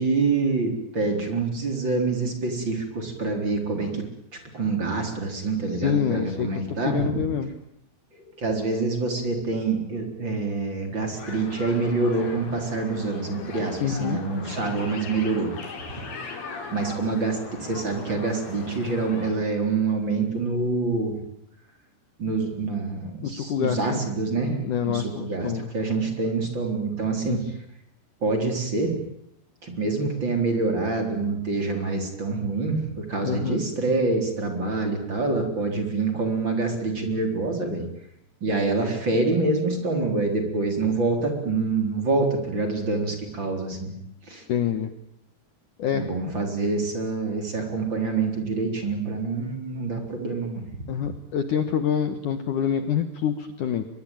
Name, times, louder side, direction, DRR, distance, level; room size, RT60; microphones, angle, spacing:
voice 1, 0.0-4.0 4.5-7.3 8.4-15.5 16.7-21.2 22.2-24.6 24.9-27.5 28.2-28.9 29.6-37.8 38.4-43.9 44.3-44.4 45.9-50.7, right 3 dB, 30° right, 4 dB, 4.3 m, -26 dB
voice 2, 5.8-7.5 13.8-14.2 23.2-24.0 24.4-25.7 27.2-27.4 33.2-33.6 44.5-44.9 45.8-46.1 50.9-53.9, left 8 dB, 65° left, 9 dB, 2.3 m, -26 dB
sound 1, 11.2-19.3, left 4 dB, 90° left, 6.8 m, -39 dB
24.0 x 22.5 x 9.0 m, 0.77 s
omnidirectional pair, 4.9 m